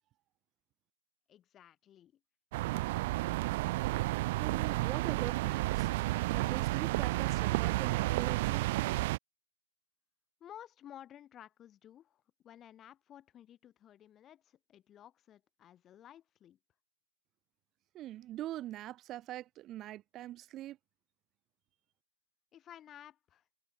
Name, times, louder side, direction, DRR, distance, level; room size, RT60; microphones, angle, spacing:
voice 1, 1.3-2.2 10.4-16.6 22.5-23.4, left 11 dB, 20° left, 4.5 m, -54 dB
sound 1, 2.5-9.2, right 19 dB, 40° right, 0.3 m, -31 dB
voice 2, 4.4-5.9 6.3-8.7 17.9-20.8, right 14 dB, 20° right, 1.1 m, -43 dB
figure-of-eight pair, 130°, 0 cm